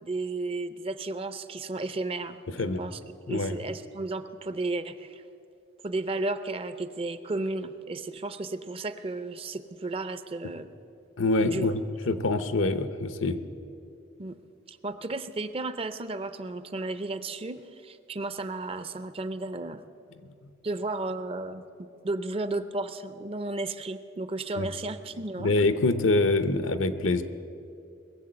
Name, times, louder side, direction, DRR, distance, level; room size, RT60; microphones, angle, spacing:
voice 1, 0.0-3.0 3.3-5.2 5.8-10.7 11.4-11.7 14.2-14.4 14.7-19.8 20.6-25.5, right 2 dB, 30° right, 12 dB, 0.5 m, -33 dB
voice 2, 11.2-13.4 24.6-24.7 25.4-27.2, left 2 dB, 80° left, 11 dB, 0.8 m, -25 dB
21.0 x 7.5 x 7.8 m, 2.6 s
head